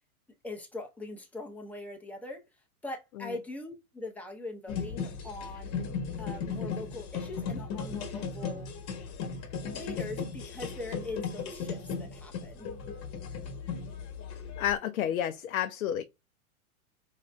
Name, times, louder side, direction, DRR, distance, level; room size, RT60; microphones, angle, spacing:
voice 1, 0.4-2.4 2.8-5.7 6.2-8.7 9.6-12.7, left 2 dB, 5° left, 0.6 m, -41 dB
sound 1, 4.7-14.8, left 5 dB, 35° left, 1.2 m, -36 dB
voice 2, 14.6-16.0, left 10 dB, 70° left, 0.5 m, -30 dB
4.8 x 2.7 x 2.2 m
hypercardioid pair, 105°, 43 cm